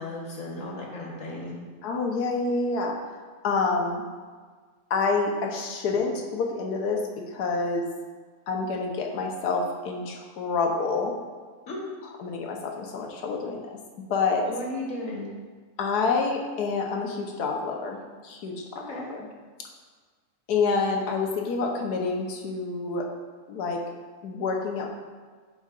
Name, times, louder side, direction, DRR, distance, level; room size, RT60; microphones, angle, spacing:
voice 1, 0.0-1.6 11.7-11.8 14.4-15.3 18.8-19.1, left 1 dB, 55° left, -2 dB, 1.7 m, -35 dB
voice 2, 1.8-3.0 3.4-4.0 4.9-7.9 8.5-11.1 12.2-13.8 14.1-14.5 15.8-18.8 19.1-19.3 20.5-23.1 23.5-23.8 24.2-24.9, left 4 dB, 80° left, 1 dB, 1.4 m, -27 dB
11.0 x 5.3 x 2.5 m, 1.5 s
omnidirectional pair, 1.7 m